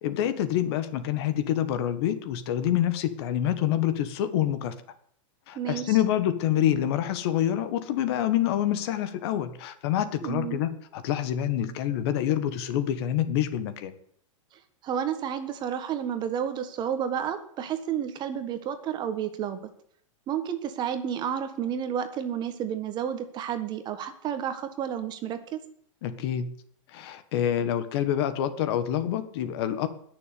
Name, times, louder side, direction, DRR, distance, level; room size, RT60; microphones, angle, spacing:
voice 1, 0.0-4.7 5.5-13.9 26.0-26.5 26.9-29.9, left 11 dB, 50° left, 12 dB, 1.6 m, -27 dB
voice 2, 5.5-6.0 10.2-10.6 14.8-19.6 20.3-25.6, right 9 dB, 25° right, 9 dB, 1.5 m, -31 dB
20.5 x 6.9 x 8.5 m, 0.63 s
supercardioid pair, 150°, 17 cm